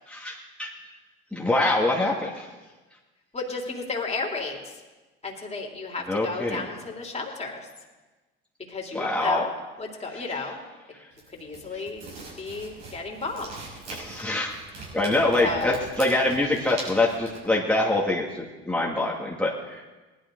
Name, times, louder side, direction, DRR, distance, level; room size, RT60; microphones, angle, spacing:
voice 1, 0.1-0.7 1.3-2.5 6.1-6.7 8.9-9.5 13.9-14.5 14.9-19.9, left 2 dB, 5° left, -4 dB, 2.2 m, -25 dB
voice 2, 3.3-4.6 5.2-7.7 8.7-9.5 9.8-10.6 11.4-12.0 12.4-13.5 15.4-15.8, left 3 dB, 20° left, -1 dB, 3.4 m, -33 dB
sound 1, 11.1-17.4, right 3 dB, 75° right, 5.5 m, -42 dB
19.0 x 12.0 x 3.9 m, 1.2 s
hypercardioid pair, 65°, 29 cm